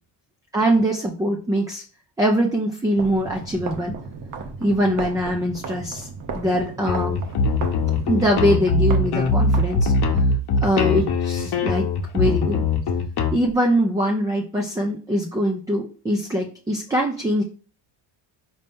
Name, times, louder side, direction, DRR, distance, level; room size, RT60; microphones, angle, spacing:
voice 1, 0.5-1.8 2.2-3.9 4.6-6.1 6.3-7.2 8.1-9.9 10.6-11.9 12.1-12.6 13.3-17.4, equal, 10° right, 1 dB, 0.3 m, -22 dB
sound 1, 2.9-10.3, right 4 dB, 40° right, 0.7 m, -35 dB
sound 2, 6.9-13.3, left 3 dB, 55° left, 0.9 m, -21 dB
4.2 x 2.8 x 3.4 m, 0.40 s
cardioid pair, 120°, 49 cm